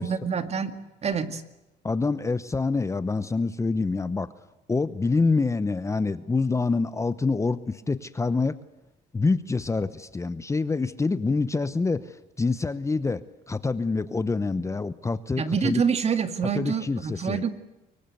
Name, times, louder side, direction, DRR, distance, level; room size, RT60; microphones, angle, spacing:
voice 1, 0.0-1.4 15.4-17.5, right 6 dB, 40° right, 10 dB, 2.2 m, -27 dB
voice 2, 1.8-4.3 4.7-8.6 9.1-15.8 16.5-17.5, left 3 dB, 15° left, 14 dB, 0.9 m, -26 dB
24.5 x 23.0 x 8.0 m, 1.0 s
cardioid pair, 110°, 17 cm